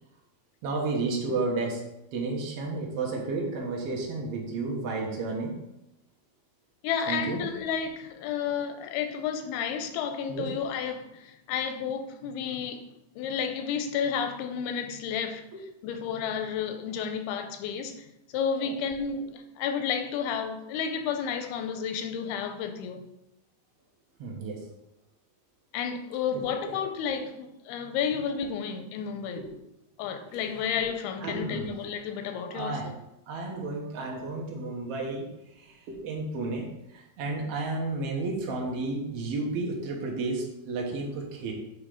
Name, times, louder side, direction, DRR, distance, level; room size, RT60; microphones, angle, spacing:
voice 1, 0.6-1.8 2.1-5.6 7.1-7.4 10.3-10.5 15.5-15.6 18.6-18.7 24.2-24.6 26.3-26.8 31.2-31.7 32.5-33.0 33.3-41.5, right 3 dB, 75° right, -1 dB, 1.4 m, -32 dB
voice 2, 6.8-12.8 13.2-15.4 15.8-18.1 18.3-23.1 25.7-29.4 30.0-32.9, left 7 dB, 85° left, 7 dB, 2.6 m, -31 dB
7.5 x 3.2 x 4.9 m, 0.86 s
omnidirectional pair, 4.4 m